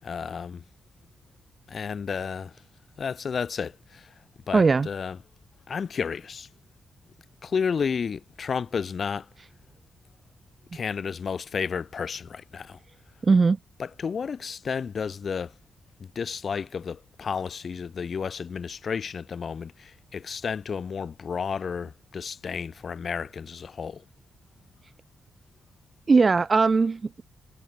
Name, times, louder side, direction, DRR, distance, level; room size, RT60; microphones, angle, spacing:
voice 1, 0.0-0.6 1.7-2.5 3.0-4.1 4.5-5.2 5.7-6.5 7.4-9.3 10.7-12.8 13.8-15.5 16.0-24.0, left 6 dB, 45° left, 6.4 m, -32 dB
voice 2, 4.5-4.9 13.2-13.6 26.1-27.2, right 4 dB, 30° right, 1.5 m, -19 dB
cardioid pair, 125°, 0 cm